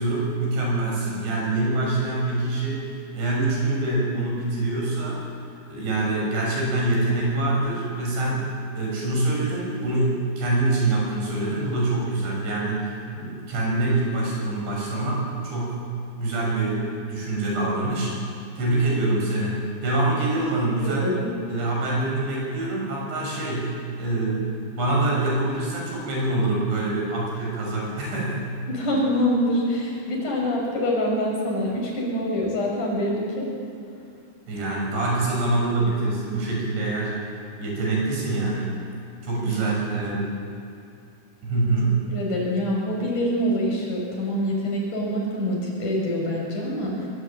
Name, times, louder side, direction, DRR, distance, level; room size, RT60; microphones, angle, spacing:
voice 1, 0.0-5.3 5.7-8.5 8.8-15.8 16.1-18.1 18.6-21.1 21.5-28.5 34.5-37.2 37.6-38.7 39.2-40.3 41.4-42.0, right 2 dB, 80° right, -3 dB, 9.1 m, -25 dB
voice 2, 20.8-21.3 28.7-33.5 39.4-39.6 42.1-47.1, equal, 45° left, -2 dB, 7.9 m, -25 dB
24.0 x 21.0 x 8.9 m, 2.5 s
omnidirectional pair, 5.0 m